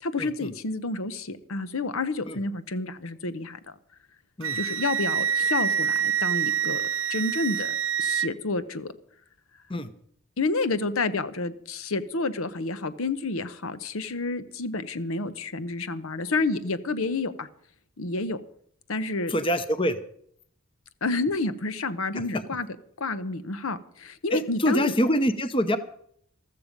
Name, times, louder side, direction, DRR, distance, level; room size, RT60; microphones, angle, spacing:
voice 1, 0.0-3.6 4.5-6.8 7.1-7.7 8.0-8.9 10.4-17.5 18.0-18.4 18.9-19.3 21.0-22.7 23.0-24.9, left 3 dB, 80° left, 13 dB, 0.9 m, -29 dB
Wind instrument woodwind instrument, 4.4-8.3, right 8 dB, 75° right, 0.8 m, -26 dB
voice 2, 19.3-20.0 24.3-25.8, equal, 25° left, 11 dB, 0.8 m, -25 dB
14.5 x 13.5 x 5.3 m, 0.65 s
head